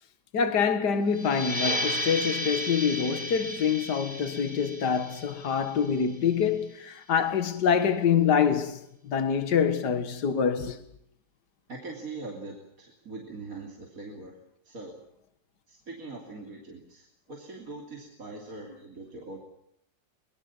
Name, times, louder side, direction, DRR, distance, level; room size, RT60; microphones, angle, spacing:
voice 1, 0.3-10.8 18.7-18.8, left 7 dB, 70° left, 2.2 m, -26 dB
sound 1, 1.1-6.4, equal, 25° left, 4.2 m, -34 dB
voice 2, 11.7-14.3 14.7-15.0 15.7-19.4, right 3 dB, 50° right, 3.5 m, -42 dB
23.5 x 22.0 x 7.2 m
omnidirectional pair, 1.9 m